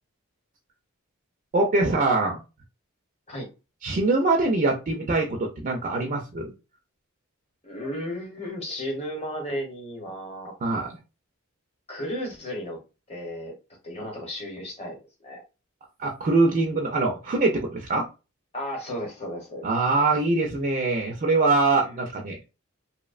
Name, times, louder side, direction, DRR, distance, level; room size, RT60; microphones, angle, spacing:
voice 1, 1.5-2.4 3.8-6.5 10.6-11.0 16.0-18.1 19.6-22.5, right 3 dB, 40° right, 0.4 m, -23 dB
voice 2, 7.6-10.5 11.9-12.8 13.1-13.5 13.8-15.4 18.5-19.7, equal, 30° left, 0.8 m, -34 dB
2.7 x 2.0 x 2.4 m
head